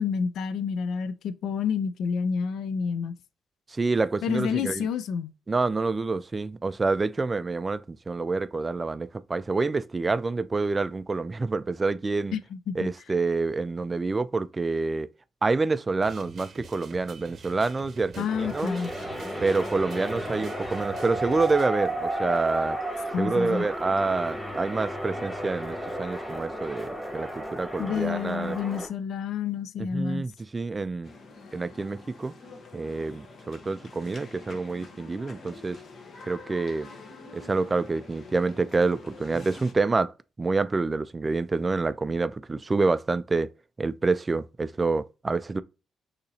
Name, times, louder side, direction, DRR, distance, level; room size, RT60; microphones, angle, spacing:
voice 1, 0.0-3.1 4.2-5.3 12.3-12.9 18.2-18.9 23.1-23.6 27.8-30.2, left 6 dB, 75° left, 0.4 m, -29 dB
voice 2, 3.7-4.9 5.5-12.4 12.7-15.1 15.4-18.8 19.4-22.8 23.2-28.6 29.8-31.1 31.5-32.3 32.7-35.8 36.3-36.9 37.3-40.1 40.4-43.5 43.8-45.6, right 3 dB, 25° right, 0.3 m, -27 dB
sound 1, 16.0-21.7, right 6 dB, 55° right, 0.7 m, -46 dB
sound 2, 18.3-28.9, right 1 dB, 5° left, 1.8 m, -33 dB
sound 3, 31.0-39.7, left 3 dB, 55° left, 1.0 m, -47 dB
6.6 x 2.8 x 2.8 m
cardioid pair, 90°, 0 cm